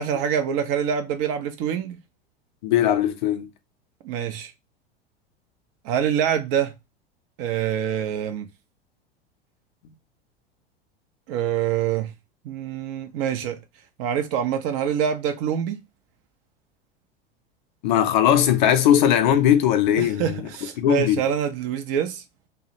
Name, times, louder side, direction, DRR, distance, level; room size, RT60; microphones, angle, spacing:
voice 1, 0.0-2.0 4.0-4.5 5.8-6.7 7.4-8.5 11.3-12.1 12.4-13.6 14.0-15.8 20.0-22.2, right 9 dB, 35° right, 0.4 m, -25 dB
voice 2, 2.6-3.5 17.8-20.4 20.8-21.2, left 10 dB, 50° left, 0.5 m, -19 dB
2.3 x 2.0 x 2.7 m
figure-of-eight pair, 80°, 30 cm